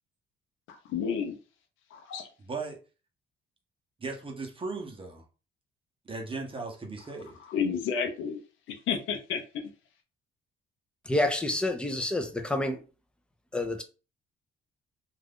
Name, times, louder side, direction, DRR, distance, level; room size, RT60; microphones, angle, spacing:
voice 1, 0.7-1.3 1.9-2.3 7.5-8.4 8.7-9.4, left 7 dB, 85° left, 0.6 m, -31 dB
voice 2, 2.4-2.8 4.0-5.2 6.0-7.4, right 3 dB, 25° right, 0.9 m, -37 dB
voice 3, 11.1-12.8 13.5-13.8, left 1 dB, 5° left, 0.6 m, -28 dB
2.5 x 2.4 x 3.5 m
cardioid pair, 90°, 20 cm